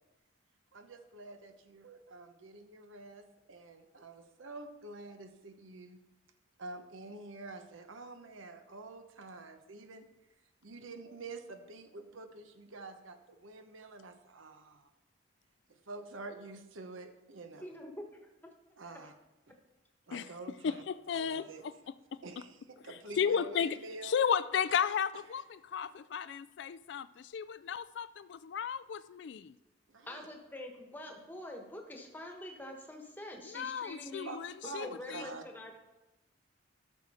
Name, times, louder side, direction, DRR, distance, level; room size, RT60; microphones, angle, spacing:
voice 1, 0.7-6.0 6.6-10.0 10.6-14.9 15.9-17.7 18.8-19.1 19.5-19.6 20.1-20.8 21.1-21.6 22.2-24.2 29.9-30.3 34.2-35.4, right 3 dB, 85° right, 0.9 m, -47 dB
voice 2, 17.6-18.1 18.4-18.5 19.0-19.1 30.1-34.3 34.6-35.7, left 1 dB, 10° left, 1.2 m, -45 dB
voice 3, 20.6-22.4 22.8-23.8 24.0-29.6 33.4-35.2, left 7 dB, 65° left, 0.3 m, -34 dB
13.0 x 6.4 x 4.3 m
head